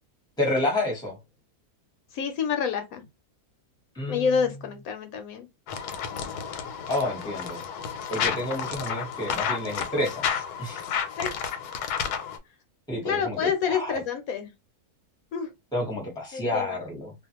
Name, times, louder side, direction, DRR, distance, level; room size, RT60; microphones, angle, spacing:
voice 1, 0.4-1.2 3.9-4.3 6.9-7.6 8.1-10.3 10.6-10.8 12.9-14.0 15.7-17.1, left 1 dB, 5° left, 0.8 m, -29 dB
voice 2, 2.1-3.0 4.1-5.5 11.2-11.3 13.0-14.5 15.3-15.5 16.3-16.8, left 6 dB, 75° left, 1.0 m, -28 dB
sound 1, 5.7-12.4, left 7 dB, 90° left, 1.1 m, -31 dB
2.4 x 2.4 x 2.8 m
omnidirectional pair, 1.6 m